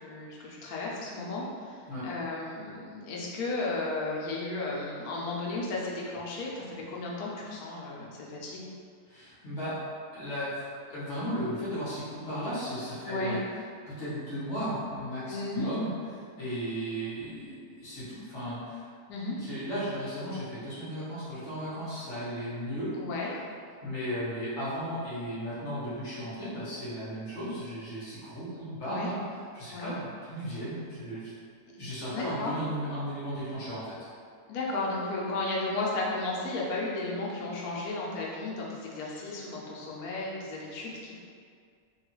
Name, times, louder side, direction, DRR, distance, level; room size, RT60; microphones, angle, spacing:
voice 1, 0.0-1.8 2.0-8.7 13.0-13.4 15.3-15.7 19.1-19.4 23.0-23.3 28.9-29.1 29.7-29.9 32.1-32.5 34.5-41.1, left 2 dB, 80° left, -4 dB, 1.1 m, -34 dB
voice 2, 9.1-9.8 10.1-13.4 13.9-18.9 19.4-22.9 23.8-31.3 31.8-34.0, equal, 55° left, -10 dB, 1.1 m, -35 dB
3.4 x 2.3 x 3.0 m, 2.2 s
omnidirectional pair, 1.6 m